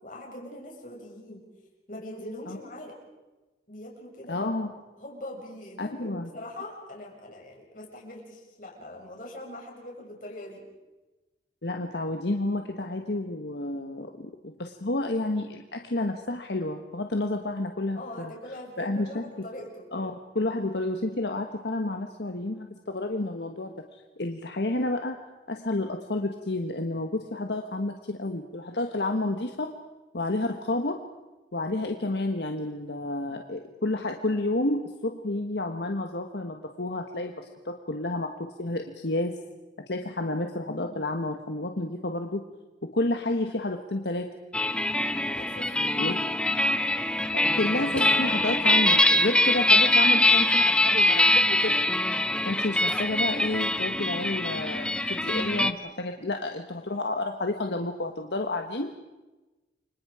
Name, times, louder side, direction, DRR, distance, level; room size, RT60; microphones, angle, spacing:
voice 1, 0.0-1.4 1.9-3.0 3.7-4.5 5.0-10.6 17.9-19.9 40.0-40.3 45.3-46.4, left 1 dB, 50° left, -1 dB, 6.6 m, -42 dB
voice 2, 4.3-4.7 5.8-6.3 11.6-18.3 18.8-19.2 19.9-25.2 25.5-29.7 30.1-31.0 31.5-39.4 39.9-42.4 42.8-44.3 46.0-46.2 47.3-51.8 52.5-58.9, left 2 dB, 80° left, 4 dB, 1.4 m, -30 dB
sound 1, 44.5-55.7, left 1 dB, 5° left, 0.8 m, -23 dB
29.5 x 25.0 x 4.9 m, 1.1 s
head